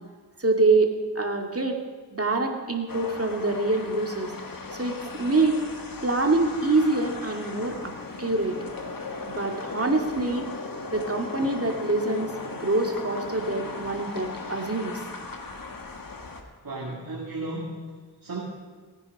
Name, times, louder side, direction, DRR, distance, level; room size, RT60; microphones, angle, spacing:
voice 1, 0.4-1.8 2.1-4.3 4.7-5.6 6.0-7.9 8.2-8.6 9.2-10.4 10.9-15.0, right 2 dB, 35° right, 3 dB, 2.2 m, -25 dB
sound 1, 2.9-16.4, left 3 dB, 55° left, 1.7 m, -37 dB
voice 2, 16.6-17.9 18.2-18.4, right 2 dB, 55° right, -3 dB, 2.1 m, -34 dB
17.5 x 9.9 x 5.3 m, 1.5 s
cardioid pair, 45°, 40 cm